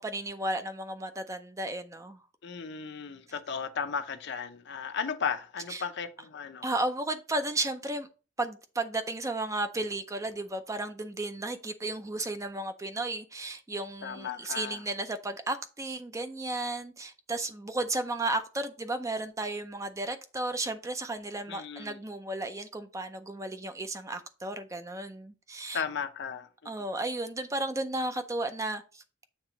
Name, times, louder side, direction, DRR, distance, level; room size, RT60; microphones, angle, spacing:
voice 1, 0.0-2.2 5.7-5.8 6.6-8.1 8.4-25.8 26.7-29.0, right 2 dB, 15° right, 0.4 m, -34 dB
voice 2, 2.4-6.7 14.0-14.8 21.5-22.0 25.7-26.9, left 6 dB, 60° left, 0.6 m, -35 dB
7.4 x 2.9 x 5.0 m
head